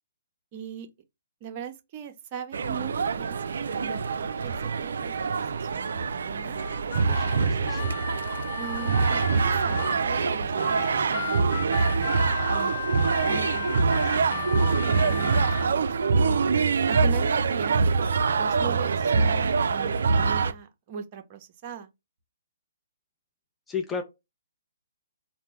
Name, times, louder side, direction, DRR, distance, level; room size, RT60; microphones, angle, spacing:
voice 1, 0.5-0.9 1.4-6.6 8.6-12.8 13.3-16.4 16.9-17.8 18.3-21.9, right 7 dB, 35° right, 0.7 m, -40 dB
sound 1, 2.5-20.5, right 4 dB, 65° right, 0.3 m, -25 dB
Harmonica, 6.5-10.0 10.6-15.7, left 9 dB, 50° left, 0.3 m, -35 dB
voice 2, 7.1-8.0 23.7-24.0, left 6 dB, 10° left, 0.6 m, -34 dB
3.4 x 2.1 x 3.1 m
figure-of-eight pair, 135°, 0 cm